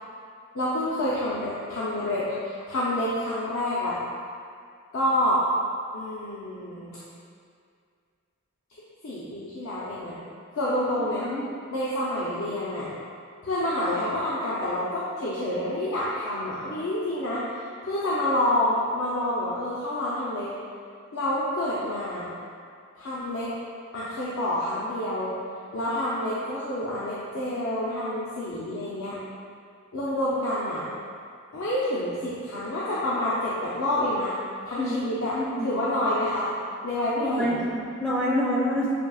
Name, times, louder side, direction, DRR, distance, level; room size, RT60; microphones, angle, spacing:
voice 1, 0.5-4.0 4.9-5.4 5.9-7.0 9.0-10.2 10.5-11.3 11.7-12.9 13.4-20.5 21.1-22.3 22.9-23.5 23.9-25.3 25.7-29.2 29.9-30.9 31.5-34.3 34.6-36.5 36.8-37.6, left 1 dB, 75° left, -8 dB, 0.6 m, -28 dB
voice 2, 34.8-35.7 37.2-38.9, equal, 5° left, -7 dB, 0.4 m, -27 dB
6.7 x 2.7 x 2.3 m, 2.3 s
head